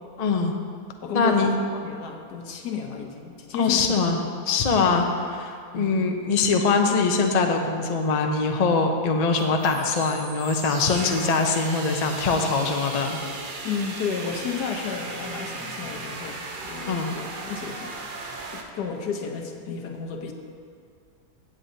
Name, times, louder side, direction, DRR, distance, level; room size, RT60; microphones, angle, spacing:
voice 1, 0.2-0.5 1.1-1.6 3.5-4.2 4.5-13.2 16.9-17.1, left 4 dB, 50° left, 3 dB, 0.5 m, -23 dB
voice 2, 1.0-4.0 5.7-6.0 13.6-18.0 18.5-20.3, left 6 dB, 85° left, 3 dB, 1.5 m, -32 dB
sound 1, 9.4-18.6, right 3 dB, 50° right, 0.6 m, -36 dB
16.5 x 7.7 x 2.7 m, 2.3 s
omnidirectional pair, 1.7 m